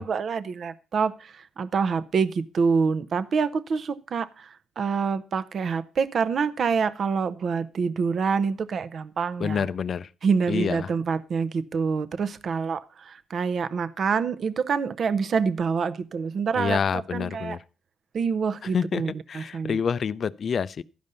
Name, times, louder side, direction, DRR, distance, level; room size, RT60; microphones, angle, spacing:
voice 1, 0.0-4.5 4.8-9.7 10.2-16.8 17.1-17.6 18.1-19.8, right 5 dB, 55° right, 0.6 m, -26 dB
voice 2, 9.4-10.1 10.5-10.9 16.6-17.6 18.6-20.8, left 6 dB, 50° left, 0.4 m, -27 dB
12.0 x 5.2 x 5.5 m
cardioid pair, 90°, 0 cm